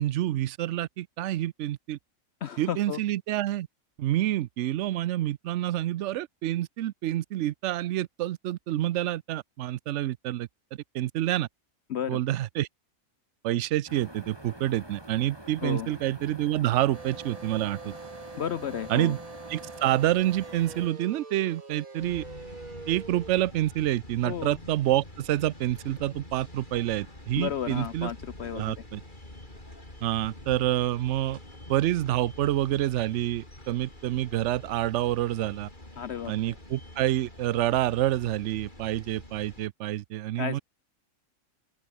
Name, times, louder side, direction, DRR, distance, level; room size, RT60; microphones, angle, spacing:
voice 1, 0.0-2.0 2.6-3.7 4.0-11.5 12.1-12.7 13.4-17.9 18.9-19.2 19.5-22.2 22.9-28.1 28.5-29.0 30.0-31.4 31.7-35.7 36.3-40.6, right 14 dB, 65° right, 0.8 m, -28 dB
voice 2, 2.4-3.0 11.9-12.2 15.6-15.9 18.4-19.1 24.2-24.6 27.4-28.7 36.0-36.6 40.4-40.6, left 9 dB, 60° left, 0.8 m, -33 dB
sound 1, 13.9-20.9, right 1 dB, 15° right, 5.0 m, -46 dB
sound 2, 16.9-23.3, right 3 dB, 85° right, 3.6 m, -44 dB
sound 3, 22.0-39.7, left 1 dB, 35° left, 5.9 m, -46 dB
open air
omnidirectional pair, 1.4 m